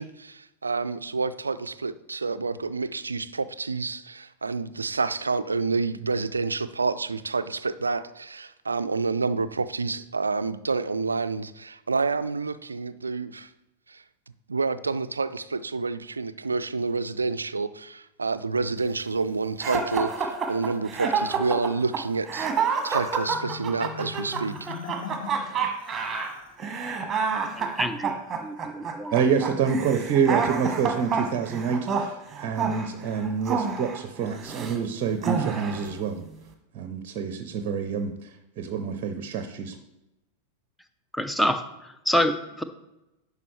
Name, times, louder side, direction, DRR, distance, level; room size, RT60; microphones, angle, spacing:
voice 1, 0.0-13.5 13.9-14.0 14.5-22.5 22.8-24.7, right 4 dB, 75° right, 14 dB, 0.3 m, -28 dB
sound 1, 19.6-34.8 35.2-35.9, right 5 dB, 20° right, 1.3 m, -29 dB
Marimba xylophone, 23.3-26.6, left 6 dB, 55° left, 0.5 m, -40 dB
voice 2, 27.5-29.1 41.1-42.6, equal, 5° left, 10 dB, 0.6 m, -27 dB
voice 3, 29.1-36.2 36.7-39.8, right 6 dB, 40° right, 8 dB, 0.7 m, -27 dB
11.0 x 5.1 x 3.3 m, 0.95 s
figure-of-eight pair, 90°, 0 cm